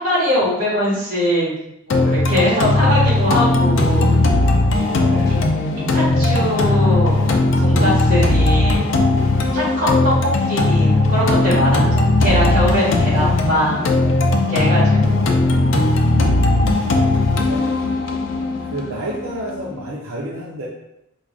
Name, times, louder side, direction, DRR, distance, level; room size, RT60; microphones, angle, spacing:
voice 1, 0.0-1.5 1.9-4.1 4.7-5.3 5.9-9.0 9.5-14.0 14.3-15.3, equal, 40° right, -7 dB, 1.5 m, -22 dB
sound 1, 1.9-19.9, left 2 dB, 65° left, 0.4 m, -17 dB
voice 2, 4.9-5.3 16.0-16.8 17.5-17.7 18.1-18.2 18.7-20.7, right 1 dB, 80° right, -4 dB, 0.6 m, -30 dB
4.6 x 2.4 x 2.4 m, 0.83 s
head